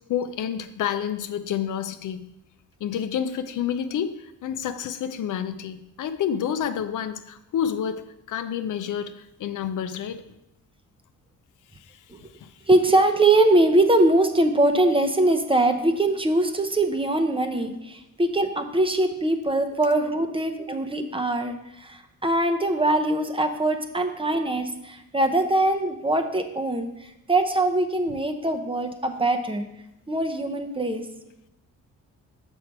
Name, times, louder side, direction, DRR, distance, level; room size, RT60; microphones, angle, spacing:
voice 1, 0.1-2.3 2.8-10.2 11.8-12.0 12.4-12.5, left 8 dB, 65° left, 10 dB, 0.6 m, -29 dB
voice 2, 12.7-29.7 30.1-31.1, right 2 dB, 15° right, 6 dB, 0.7 m, -22 dB
6.6 x 5.3 x 4.6 m, 0.88 s
cardioid pair, 85°, 34 cm